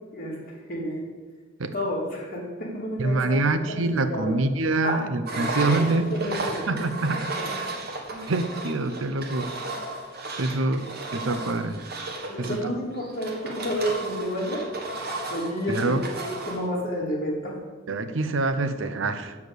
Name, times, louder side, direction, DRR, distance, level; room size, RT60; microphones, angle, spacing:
voice 1, 0.1-1.0 1.7-4.3 4.8-5.0 5.3-6.6 7.4-7.5 8.1-8.3 12.3-14.6 15.3-17.6 19.2-19.4, equal, 45° left, -4 dB, 2.9 m, -31 dB
voice 2, 3.0-6.1 6.7-7.7 8.3-9.5 10.4-11.8 12.4-12.6 15.7-16.0 17.9-19.4, right 2 dB, 70° right, 11 dB, 0.7 m, -26 dB
Engine, 5.3-16.7, right 2 dB, 50° right, 1.5 m, -34 dB
7.1 x 6.8 x 8.0 m, 1.4 s
head